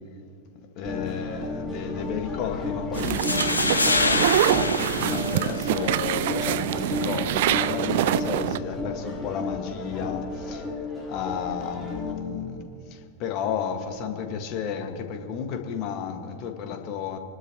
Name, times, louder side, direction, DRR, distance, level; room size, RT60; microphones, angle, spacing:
voice 1, 0.5-17.2, left 7 dB, 40° left, 5 dB, 1.7 m, -33 dB
sound 1, 0.8-12.1, left 3 dB, 5° left, 3.5 m, -33 dB
sound 2, 2.9-6.0, left 2 dB, 80° left, 1.4 m, -26 dB
sound 3, 3.0-8.6, right 13 dB, 55° right, 0.4 m, -25 dB
29.0 x 12.5 x 3.0 m, 2.5 s
figure-of-eight pair, 90°, 0 cm